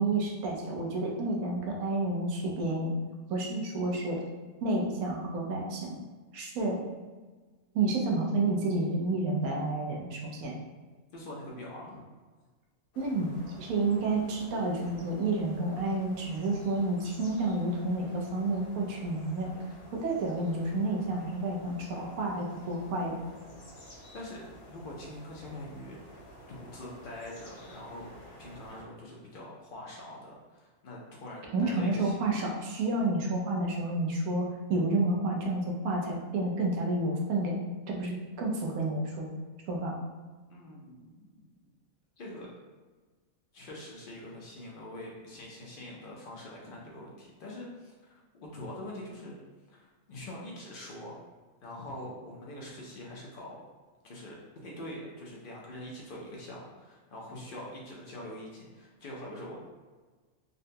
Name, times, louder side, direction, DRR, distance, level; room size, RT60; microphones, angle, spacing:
voice 1, 0.0-2.9 3.3-4.2 4.6-6.0 6.3-6.8 7.7-10.5 13.0-13.3 13.6-19.5 20.0-23.2 31.5-37.5 37.9-39.3 39.7-39.9, right 2 dB, 80° right, -1 dB, 1.1 m, -30 dB
voice 2, 11.1-12.1 24.1-26.0 26.5-28.1 28.4-32.2 40.5-41.5 42.2-42.5 43.5-48.1 48.4-49.3 49.7-51.2 51.6-53.6 54.0-59.6, left 1 dB, 60° left, -3 dB, 0.5 m, -44 dB
sound 1, 12.9-28.8, equal, 75° left, 1.2 m, -51 dB
3.8 x 2.2 x 2.6 m, 1.3 s
omnidirectional pair, 1.5 m